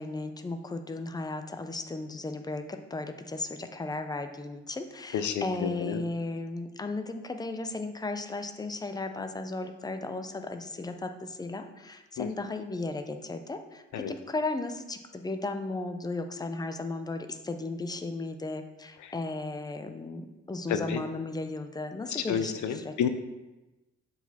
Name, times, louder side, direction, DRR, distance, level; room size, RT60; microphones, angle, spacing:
voice 1, 0.0-23.1, left 2 dB, 15° left, 7 dB, 0.4 m, -35 dB
voice 2, 5.1-6.0 12.2-12.3 13.9-14.1 19.0-19.1 20.7-21.0 22.1-23.1, left 8 dB, 85° left, 9 dB, 0.6 m, -30 dB
7.1 x 4.1 x 4.1 m, 1.1 s
cardioid pair, 145°, 29 cm